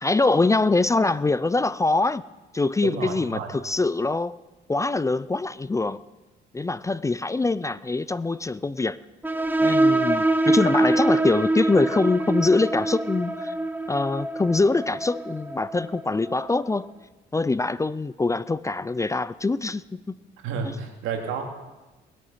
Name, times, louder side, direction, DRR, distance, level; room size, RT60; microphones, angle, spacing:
voice 1, 0.0-2.2 2.5-4.3 4.7-6.0 6.5-9.0 9.6-13.5 13.9-16.9 17.3-20.2, left 3 dB, 15° left, 0.4 m, -24 dB
voice 2, 2.8-3.5 20.4-21.4, right 6 dB, 85° right, 2.4 m, -30 dB
sound 1, 9.2-16.5, right 2 dB, 10° right, 1.2 m, -24 dB
20.5 x 8.8 x 5.6 m
cardioid pair, 85°, 20 cm